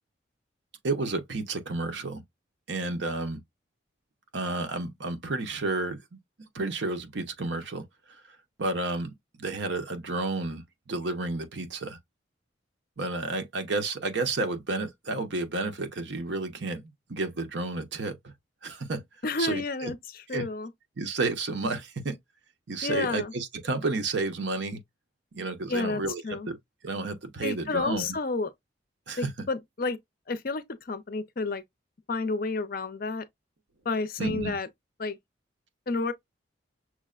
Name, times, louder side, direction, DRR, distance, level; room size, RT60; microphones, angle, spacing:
voice 1, 0.8-2.2 2.7-3.4 4.3-6.0 6.5-7.8 8.6-9.1 9.4-12.0 13.0-18.3 18.6-19.0 19.4-19.9 20.3-20.5 21.0-22.2 22.7-24.8 25.3-26.2 26.5-26.6 26.8-28.1 29.1-29.3 34.2-34.6, right 3 dB, 70° right, 0.8 m, -31 dB
voice 2, 19.2-20.7 22.8-23.3 25.7-26.5 27.4-28.5 29.2-30.0 30.3-31.6 32.1-33.2 33.8-34.7 35.0-35.2 35.9-36.1, left 3 dB, 50° left, 0.5 m, -30 dB
6.0 x 2.1 x 2.4 m
head